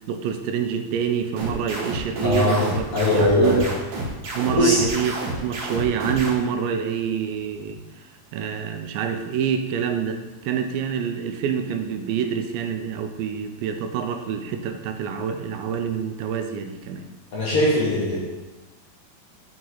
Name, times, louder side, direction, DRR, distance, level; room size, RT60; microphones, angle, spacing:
voice 1, 0.1-3.7 4.4-5.1 5.4-7.8 8.3-17.1, right 7 dB, 85° right, 6 dB, 2.3 m, -26 dB
sound 1, 1.4-6.3, right 2 dB, 65° right, 2.6 m, -30 dB
voice 2, 2.2-2.6 2.9-3.7 4.5-4.8 17.3-18.2, left 1 dB, 50° left, -8 dB, 2.1 m, -20 dB
6.2 x 6.0 x 3.9 m, 1.2 s
omnidirectional pair, 4.0 m